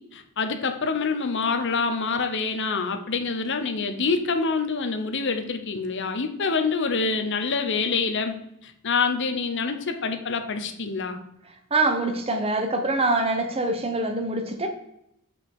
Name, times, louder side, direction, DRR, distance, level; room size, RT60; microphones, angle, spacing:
voice 1, 0.1-8.3 8.6-11.2, left 4 dB, 55° left, 6 dB, 0.9 m, -26 dB
voice 2, 11.7-14.7, right 2 dB, 25° right, 5 dB, 1.0 m, -24 dB
6.1 x 5.2 x 4.9 m, 0.78 s
head